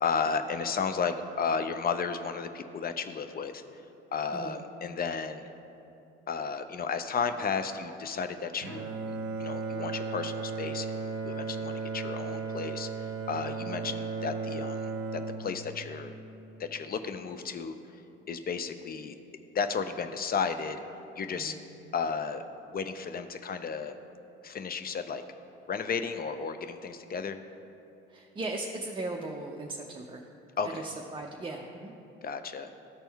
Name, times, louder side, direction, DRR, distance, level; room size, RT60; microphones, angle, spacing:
voice 1, 0.0-3.6 4.1-5.5 6.3-16.1 16.6-17.7 18.3-19.2 19.5-20.8 21.1-21.6 21.9-22.4 22.7-23.9 24.4-25.2 25.7-27.4 30.6-30.8 32.2-32.7, left 5 dB, 30° left, 9 dB, 0.5 m, -33 dB
Bowed string instrument, 8.6-16.8, right 4 dB, 45° right, 0.8 m, -36 dB
voice 2, 28.1-30.3 30.7-31.9, right 2 dB, 15° right, 0 dB, 0.6 m, -38 dB
12.5 x 4.3 x 3.4 m, 2.8 s
hypercardioid pair, 55°, 32 cm